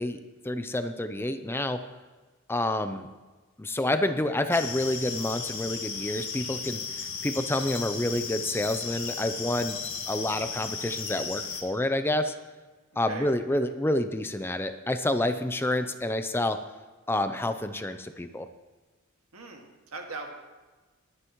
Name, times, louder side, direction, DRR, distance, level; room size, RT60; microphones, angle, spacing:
voice 1, 0.0-1.8 2.5-3.1 3.6-9.8 10.1-12.3 13.0-16.6 17.1-18.5, left 1 dB, 10° left, 9 dB, 0.5 m, -28 dB
sound 1, 4.5-11.6, left 6 dB, 55° left, 2.0 m, -35 dB
voice 2, 19.3-20.3, right 3 dB, 90° right, 2 dB, 2.0 m, -40 dB
21.0 x 9.8 x 3.1 m, 1.3 s
head